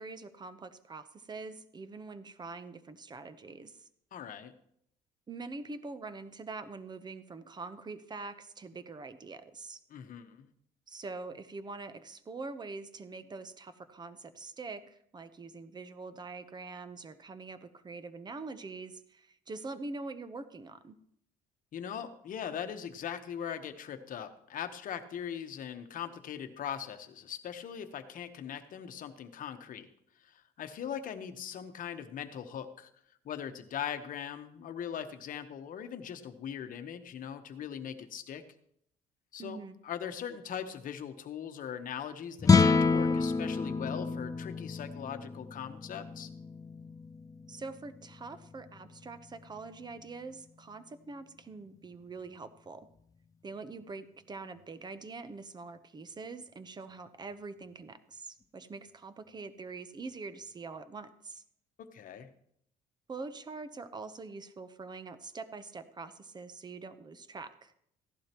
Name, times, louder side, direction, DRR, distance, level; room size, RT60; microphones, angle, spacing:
voice 1, 0.0-3.9 5.3-9.8 10.9-21.0 39.4-39.8 47.5-52.9 53.4-61.4 63.1-67.7, right 3 dB, 25° right, 11 dB, 0.9 m, -44 dB
voice 2, 4.1-4.5 9.9-10.5 21.7-29.9 30.2-32.9 33.2-38.4 39.3-46.3 61.8-62.3, left 8 dB, 55° left, 8 dB, 1.1 m, -40 dB
sound 1, 42.4-48.8, left 4 dB, 20° left, 0.5 m, -29 dB
15.5 x 11.5 x 3.0 m, 0.70 s
cardioid pair, 110°, 17 cm